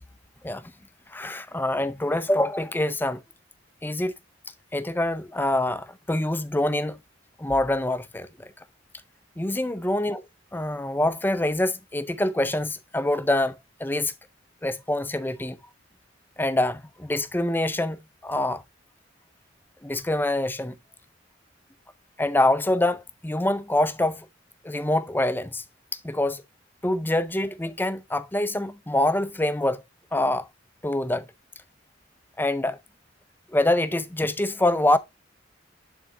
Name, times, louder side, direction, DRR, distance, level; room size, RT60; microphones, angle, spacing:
voice 1, 1.1-3.2 3.8-4.1 4.7-7.0 7.4-8.5 9.4-10.2 10.5-14.1 14.6-15.6 16.4-18.6 19.8-20.7 22.2-24.3 24.6-25.6 26.0-26.4 26.8-29.8 30.1-30.5 30.8-31.3 32.4-32.8 33.5-35.0, left 1 dB, 10° left, 0.5 m, -25 dB
11.0 x 3.7 x 2.8 m
head